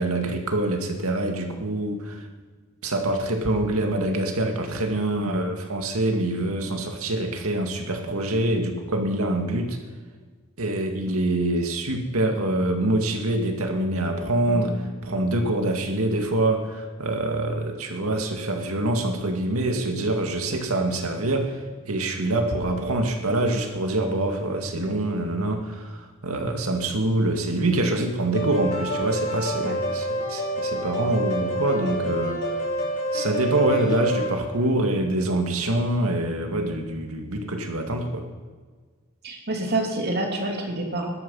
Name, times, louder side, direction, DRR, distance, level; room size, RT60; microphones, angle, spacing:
voice 1, 0.0-2.3 2.8-9.8 10.6-14.7 15.0-32.5 33.1-38.2, right 1 dB, 85° right, 3 dB, 2.1 m, -25 dB
voice 2, 14.5-14.8 29.6-29.7 39.2-41.1, right 1 dB, 50° right, 1 dB, 2.8 m, -28 dB
sound 1, 28.3-34.3, equal, 55° left, 5.9 m, -28 dB
17.5 x 12.5 x 5.6 m, 1.5 s
head